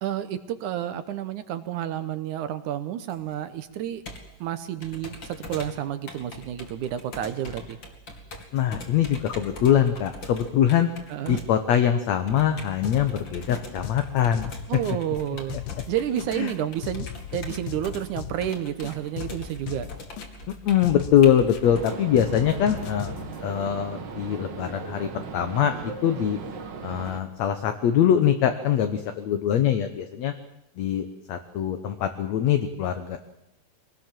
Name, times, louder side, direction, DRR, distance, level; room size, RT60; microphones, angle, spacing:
voice 1, 0.0-4.0 4.4-7.8 11.1-11.4 14.7-15.6 15.9-19.9, right 11 dB, 70° right, 11 dB, 2.3 m, -30 dB
Computer keyboard, 3.1-22.0, left 1 dB, 40° left, 2.9 m, -42 dB
voice 2, 8.5-10.9 11.3-14.5 16.3-16.5 20.7-23.1 23.4-26.4 26.8-30.3 30.8-33.2, left 9 dB, 65° left, 8 dB, 2.1 m, -23 dB
sound 1, 12.8-13.2 13.5-15.2 15.5-16.5 16.8-18.5 18.8-20.5 20.8-21.9 22.2-23.4, left 11 dB, 85° left, 2.7 m, -37 dB
sound 2, 21.6-27.2, right 5 dB, 45° right, 1.5 m, -37 dB
23.5 x 19.0 x 7.5 m, 0.87 s
omnidirectional pair, 3.8 m